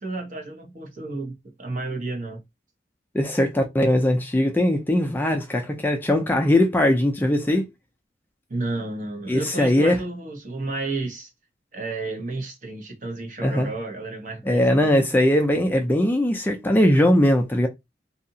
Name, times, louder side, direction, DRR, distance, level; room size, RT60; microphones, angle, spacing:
voice 1, 0.0-2.4 8.5-11.3 11.7-14.9, right 2 dB, 50° right, 0.9 m, -32 dB
voice 2, 3.1-7.6 9.3-10.0 13.4-13.7 14.5-17.7, left 1 dB, 10° left, 0.4 m, -20 dB
2.7 x 2.4 x 2.7 m
head